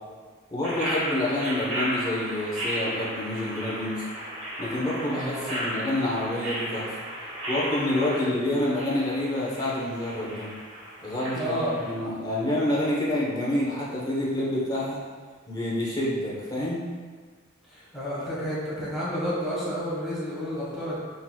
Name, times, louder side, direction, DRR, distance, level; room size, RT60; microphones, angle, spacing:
voice 1, 0.5-4.0 4.6-6.9 7.5-10.5 11.0-15.0 15.5-16.8, left 1 dB, 20° left, -6 dB, 0.9 m, -28 dB
sound 1, 0.6-11.9, equal, 65° right, 1.3 m, -34 dB
voice 2, 5.1-5.7 8.1-8.2 11.3-11.8 17.7-21.0, equal, ahead, -9 dB, 1.3 m, -31 dB
4.4 x 3.8 x 2.3 m, 1.5 s
head